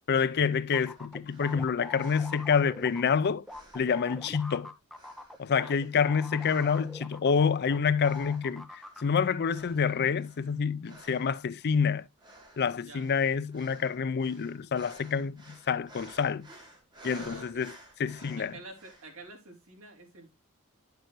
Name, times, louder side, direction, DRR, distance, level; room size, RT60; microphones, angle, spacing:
voice 1, 0.1-3.4 3.7-4.7 5.4-12.1 12.6-16.5 17.0-17.7 18.0-18.5, left 6 dB, 50° left, 0.4 m, -27 dB
sound 1, 0.7-7.8 8.0-9.0, left 1 dB, ahead, 1.1 m, -44 dB
sound 2, 0.7-3.1 3.5-4.6 4.9-7.0 7.3-7.7 8.0-9.2 9.4-19.2, right 1 dB, 20° right, 2.9 m, -53 dB
voice 2, 17.1-17.7 18.4-20.3, right 2 dB, 65° right, 3.6 m, -49 dB
10.5 x 6.8 x 3.0 m
head